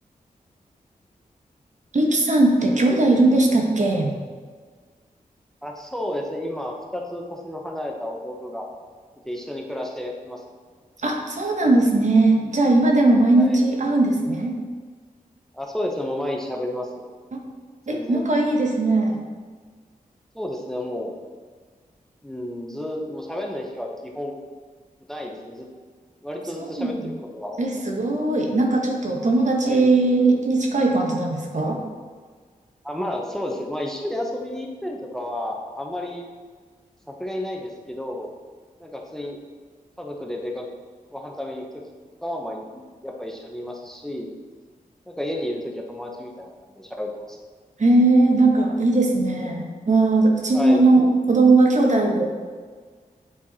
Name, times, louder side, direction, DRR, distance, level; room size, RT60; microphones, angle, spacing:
voice 1, 1.9-4.2 11.0-14.5 17.9-19.2 26.8-27.1 27.6-31.8 47.8-52.3, right 2 dB, 55° right, 1 dB, 1.3 m, -19 dB
voice 2, 5.6-8.7 9.2-10.4 13.3-13.6 15.5-17.0 17.9-18.3 20.3-21.1 22.2-24.4 25.1-25.7 26.2-27.8 29.6-29.9 32.8-36.3 37.2-38.3 38.8-39.4 40.0-40.7 41.1-41.8 42.2-44.3 45.0-47.4 50.5-50.8, left 1 dB, 5° left, 1 dB, 1.0 m, -31 dB
8.4 x 4.7 x 4.2 m, 1.6 s
wide cardioid pair, 75°, 15 cm